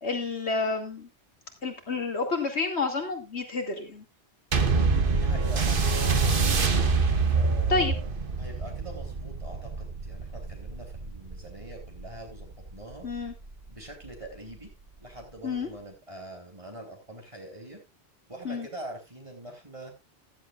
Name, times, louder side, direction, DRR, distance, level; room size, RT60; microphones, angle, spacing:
voice 1, 0.0-1.1 1.6-4.0 7.7-7.9 13.0-13.3 15.4-15.7 18.4-18.7, left 3 dB, 85° left, 3 dB, 2.7 m, -29 dB
sound 1, 4.5-13.3 14.0-14.1, right 4 dB, 55° right, 1.3 m, -26 dB
voice 2, 5.1-5.8 7.3-8.1 8.4-13.1 13.7-14.7 15.0-17.8 18.3-20.0, right 1 dB, 30° right, 1 dB, 3.5 m, -44 dB
14.5 x 11.5 x 2.4 m, 0.23 s
omnidirectional pair, 1.1 m